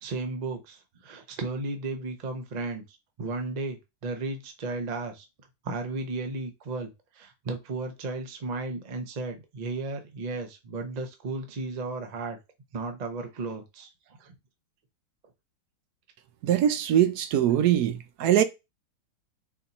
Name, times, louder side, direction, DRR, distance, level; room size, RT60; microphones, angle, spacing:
voice 1, 0.0-5.3 5.6-12.4 12.7-13.9 14.2-14.3, right 3 dB, 45° right, 0.5 m, -34 dB
voice 2, 16.4-18.4, right 10 dB, 75° right, 1.0 m, -22 dB
4.3 x 2.8 x 4.0 m
omnidirectional pair, 1.8 m